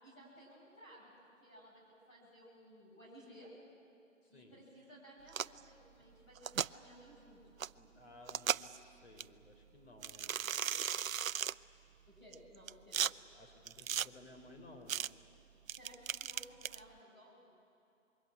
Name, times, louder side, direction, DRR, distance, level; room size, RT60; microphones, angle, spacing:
voice 1, 0.0-3.5 4.3-7.6 8.5-8.7 12.1-13.0 15.7-17.5, equal, 20° left, -6 dB, 6.9 m, -58 dB
voice 2, 4.2-4.6 7.7-10.4 13.3-15.1, left 2 dB, 50° left, 3 dB, 4.5 m, -57 dB
sound 1, 5.3-5.6 6.4-6.7 7.6-7.7 8.3-8.8 9.2-9.3 10.0-11.5 12.3-13.1 13.7-14.1 14.9-15.1 15.7-16.8, right 9 dB, 80° right, 0.6 m, -36 dB
26.0 x 22.5 x 8.9 m, 2.7 s
hypercardioid pair, 165°, 40 cm